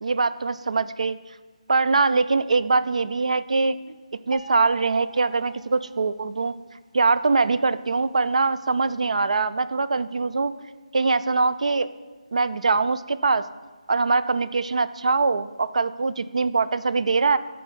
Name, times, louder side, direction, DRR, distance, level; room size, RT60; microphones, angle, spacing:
voice 1, 0.0-1.2 1.7-4.0 4.3-6.6 6.9-10.5 10.9-11.9 12.3-13.4 13.9-17.4, right 4 dB, 65° right, 14 dB, 0.4 m, -22 dB
sound 1, 4.3-6.6, right 3 dB, 85° right, 1.2 m, -44 dB
11.0 x 4.6 x 5.2 m, 1.4 s
hypercardioid pair, 175°, 4 cm